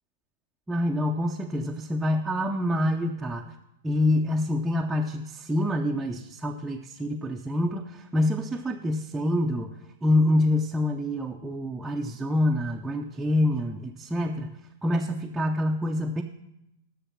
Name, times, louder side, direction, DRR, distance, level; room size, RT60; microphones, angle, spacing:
voice 1, 0.7-3.5 3.8-9.7 10.0-16.2, left 1 dB, 10° right, 0 dB, 0.6 m, -26 dB
11.0 x 6.7 x 5.8 m, 0.87 s
hypercardioid pair, 120°, 0 cm